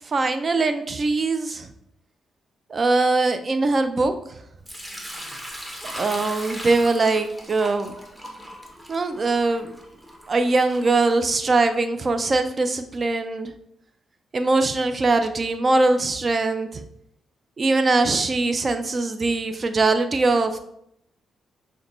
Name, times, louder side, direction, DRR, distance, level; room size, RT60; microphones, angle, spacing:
voice 1, 0.1-1.7 2.7-4.1 5.8-7.9 8.9-9.7 10.3-13.5 14.3-16.8 17.6-20.6, right 3 dB, 40° right, 8 dB, 0.4 m, -22 dB
Sink (filling or washing) / Liquid, 4.7-11.6, equal, 10° right, 0.9 m, -38 dB
6.3 x 2.2 x 3.0 m, 0.76 s
cardioid pair, 70°, 0 cm